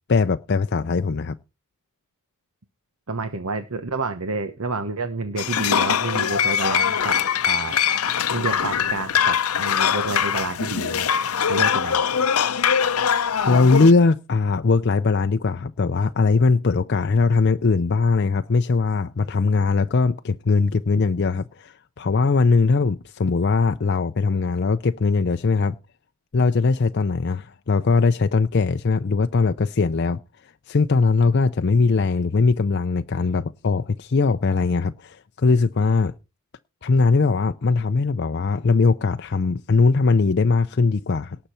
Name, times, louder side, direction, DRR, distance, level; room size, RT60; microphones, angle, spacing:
voice 1, 0.1-1.4 13.5-25.7 26.3-30.2 30.7-36.1 36.8-41.4, left 4 dB, 50° left, 0.5 m, -20 dB
voice 2, 3.1-7.2 7.4-7.8 8.3-11.1 11.5-12.0, right 3 dB, 80° right, 1.1 m, -29 dB
sound 1, 5.4-13.9, left 8 dB, 90° left, 0.7 m, -22 dB
18.5 x 6.7 x 4.4 m
head